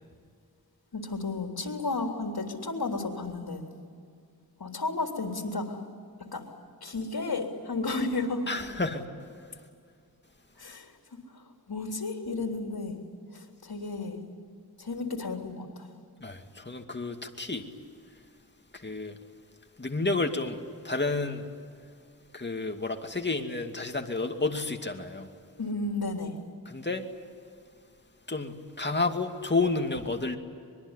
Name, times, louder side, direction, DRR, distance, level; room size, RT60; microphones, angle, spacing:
voice 1, 0.9-3.6 4.6-5.8 6.3-6.4 6.8-8.5 10.6-10.9 11.3-13.0 13.3-14.2 14.8-15.9 25.6-26.4, left 3 dB, 75° left, 3 dB, 3.6 m, -33 dB
voice 2, 8.5-9.1 16.2-17.6 18.8-19.1 19.8-20.6 20.8-21.5 22.3-25.3 26.7-27.1 28.3-30.4, left 3 dB, 30° left, 4 dB, 2.5 m, -30 dB
25.0 x 22.0 x 9.9 m, 2.3 s
wide cardioid pair, 55°, 37 cm